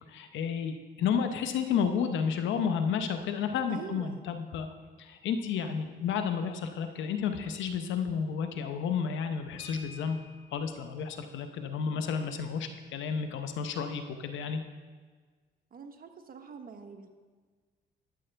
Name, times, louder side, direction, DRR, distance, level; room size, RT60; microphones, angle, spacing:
voice 1, 0.1-4.7 5.0-10.2 10.5-14.6, left 6 dB, 80° left, 7 dB, 0.8 m, -31 dB
voice 2, 3.7-4.2 15.7-17.1, right 5 dB, 50° right, 6 dB, 1.0 m, -44 dB
sound 1, 9.6-10.7 12.1-12.2 12.6-12.8 13.1-13.4, left 3 dB, 30° left, 2.3 m, -50 dB
13.0 x 7.8 x 3.4 m, 1.5 s
cardioid pair, 75°, 19 cm